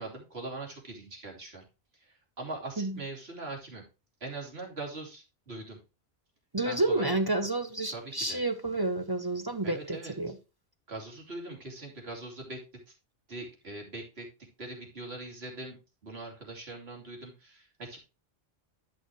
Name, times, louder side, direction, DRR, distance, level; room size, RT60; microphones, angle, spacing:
voice 1, 0.0-1.6 1.9-3.8 4.2-5.8 6.6-7.1 7.9-8.4 9.6-10.1 10.9-12.9 13.3-14.3 14.6-15.8 16.0-18.0, right 2 dB, 75° right, 2.9 m, -41 dB
voice 2, 6.5-10.3, right 2 dB, 25° right, 0.6 m, -30 dB
10.5 x 6.3 x 3.1 m
omnidirectional pair, 1.1 m